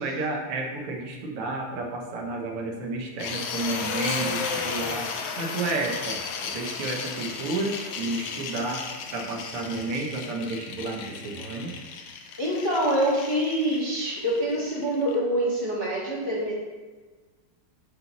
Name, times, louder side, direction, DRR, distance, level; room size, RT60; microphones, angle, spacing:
voice 1, 0.0-5.1 5.4-8.8 9.1-11.8, right 2 dB, 85° right, 1 dB, 1.9 m, -31 dB
sound 1, 3.2-15.2, left 5 dB, 80° left, 1.6 m, -34 dB
voice 2, 12.4-16.5, right 1 dB, 15° left, -6 dB, 1.0 m, -25 dB
5.5 x 4.0 x 5.8 m, 1.3 s
omnidirectional pair, 2.4 m